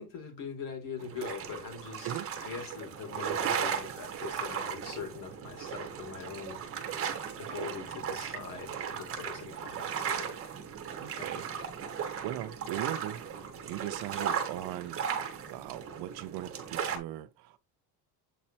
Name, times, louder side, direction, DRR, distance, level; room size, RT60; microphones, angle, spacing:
voice 1, 0.0-2.1 2.4-6.6 7.4-10.3 10.9-11.3, left 6 dB, 50° left, 2.8 m, -42 dB
sound 1, 1.0-17.0, right 7 dB, 30° right, 1.4 m, -36 dB
voice 2, 11.0-11.4 12.0-15.0 15.5-17.6, right 13 dB, 60° right, 0.7 m, -39 dB
8.1 x 4.2 x 3.0 m
cardioid pair, 165°, 43 cm